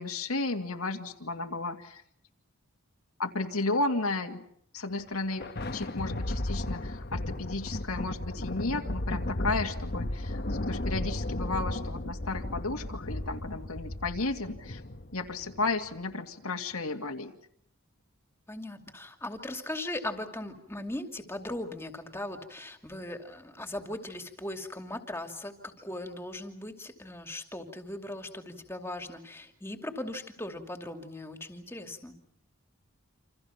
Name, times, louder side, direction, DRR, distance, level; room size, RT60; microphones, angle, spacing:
voice 1, 0.0-2.0 3.2-4.4 4.7-5.4 5.7-14.8 15.1-17.3, left 3 dB, 80° left, 3 dB, 2.3 m, -33 dB
Thunder, 5.0-15.7, left 1 dB, 45° left, 1.3 m, -34 dB
voice 2, 18.5-32.1, left 1 dB, 10° left, 5 dB, 2.7 m, -39 dB
28.0 x 27.5 x 5.9 m, 0.68 s
head